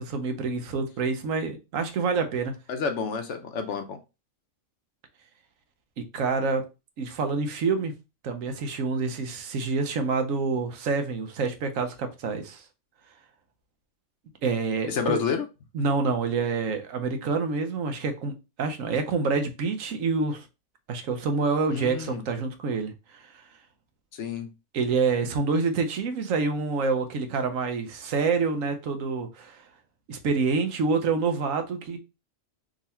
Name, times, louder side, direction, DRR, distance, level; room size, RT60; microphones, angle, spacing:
voice 1, 0.0-2.5 6.0-6.6 7.0-7.9 8.2-12.6 14.4-15.2 15.7-18.3 18.6-20.5 20.9-23.3 24.7-29.7 30.1-32.0, right 4 dB, 75° right, 1.2 m, -27 dB
voice 2, 2.7-4.0 14.9-15.5 21.7-22.2 24.1-24.5, left 6 dB, 65° left, 1.0 m, -29 dB
3.7 x 3.0 x 4.2 m
omnidirectional pair, 1.4 m